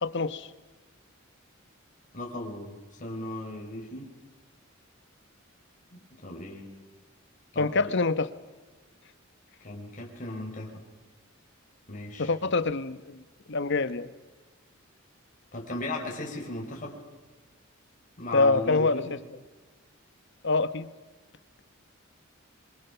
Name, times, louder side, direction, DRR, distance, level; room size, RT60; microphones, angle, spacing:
voice 1, 0.0-0.5 7.6-8.3 12.2-13.2 13.5-14.1 18.3-19.0 20.4-20.9, left 3 dB, 60° left, 14 dB, 1.1 m, -25 dB
voice 2, 2.1-4.1 5.9-6.7 7.5-7.9 9.6-10.8 11.9-12.5 15.5-17.0 18.2-19.1, left 2 dB, 40° left, -1 dB, 4.1 m, -37 dB
25.5 x 24.5 x 5.8 m, 1.3 s
head